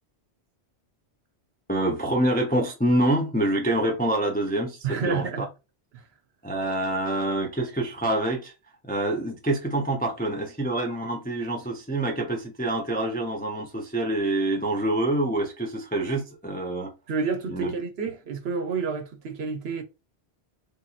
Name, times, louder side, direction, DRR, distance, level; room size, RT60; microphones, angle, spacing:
voice 1, 1.7-5.5 6.4-8.5 8.8-16.9 17.5-17.7, right 1 dB, 15° left, 0.3 m, -26 dB
voice 2, 4.8-5.5 17.1-19.8, right 5 dB, 65° right, 0.9 m, -29 dB
3.4 x 2.8 x 2.4 m
omnidirectional pair, 1.2 m